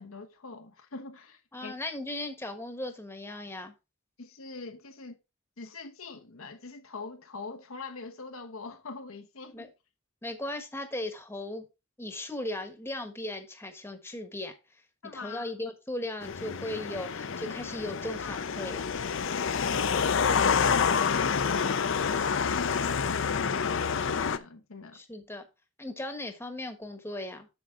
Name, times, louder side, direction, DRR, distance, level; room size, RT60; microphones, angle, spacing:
voice 1, 0.0-1.7 4.2-5.2 5.6-9.7 15.0-15.5 18.2-18.5 19.5-25.0, left 4 dB, 85° left, 1.1 m, -43 dB
voice 2, 1.5-3.7 9.5-9.7 10.2-11.6 12.0-14.5 15.1-18.9 24.9-25.5 25.8-27.5, left 1 dB, 10° left, 1.2 m, -37 dB
sound 1, 16.2-24.4, left 6 dB, 65° left, 0.6 m, -28 dB
7.9 x 6.7 x 3.6 m
head